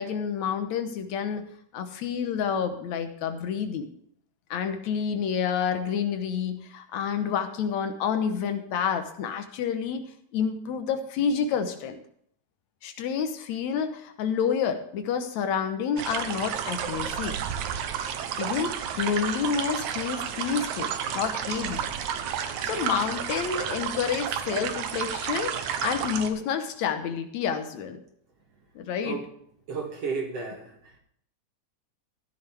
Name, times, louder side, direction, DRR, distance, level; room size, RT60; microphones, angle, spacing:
voice 1, 0.0-1.5 1.7-3.9 4.5-12.0 12.8-17.4 18.4-21.9 22.6-28.0 28.8-29.2, left 7 dB, 75° left, 7 dB, 2.3 m, -29 dB
sound 1, 16.0-26.3, right 8 dB, 85° right, 2.4 m, -31 dB
voice 2, 29.7-30.7, right 4 dB, 60° right, 3 dB, 2.5 m, -32 dB
14.5 x 10.5 x 3.4 m, 0.65 s
omnidirectional pair, 3.3 m